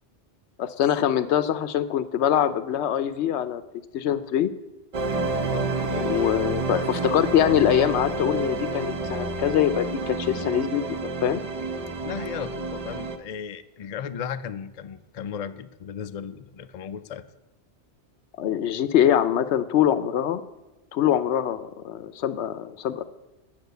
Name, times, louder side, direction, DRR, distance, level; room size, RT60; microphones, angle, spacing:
voice 1, 0.6-3.6 3.9-4.5 6.1-10.8 11.2-11.4 18.4-20.4 20.9-23.0, left 10 dB, 75° left, 13 dB, 0.9 m, -23 dB
sound 1, 4.9-13.2, right 3 dB, 40° right, 0.7 m, -29 dB
voice 2, 5.5-6.3 12.0-17.2, left 8 dB, 55° left, 11 dB, 0.4 m, -35 dB
8.4 x 6.1 x 7.9 m, 1.1 s
omnidirectional pair, 1.2 m